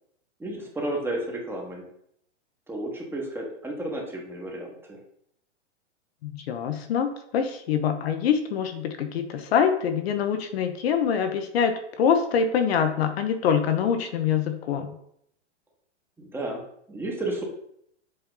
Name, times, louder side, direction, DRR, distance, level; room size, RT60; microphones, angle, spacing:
voice 1, 0.4-1.9 2.7-5.0 16.2-16.6 16.9-17.4, right 1 dB, 5° right, 0 dB, 1.2 m, -32 dB
voice 2, 6.2-15.0, left 7 dB, 55° left, 7 dB, 1.0 m, -25 dB
7.6 x 4.2 x 3.9 m, 0.71 s
hypercardioid pair, 140°, 36 cm